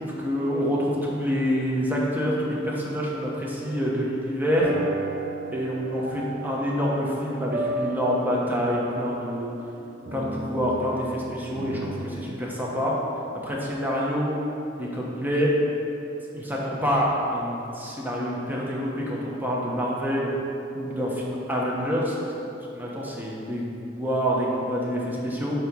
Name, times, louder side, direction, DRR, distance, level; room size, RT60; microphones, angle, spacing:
voice 1, 0.0-4.7 5.5-9.5 10.1-12.9 13.4-14.4 14.8-15.5 16.3-17.1 17.3-20.3 20.7-22.3 22.7-25.6, equal, 10° right, -4 dB, 1.1 m, -27 dB
sound 1, 4.6-12.0, right 2 dB, 65° right, 0.9 m, -34 dB
8.9 x 3.0 x 6.2 m, 2.8 s
head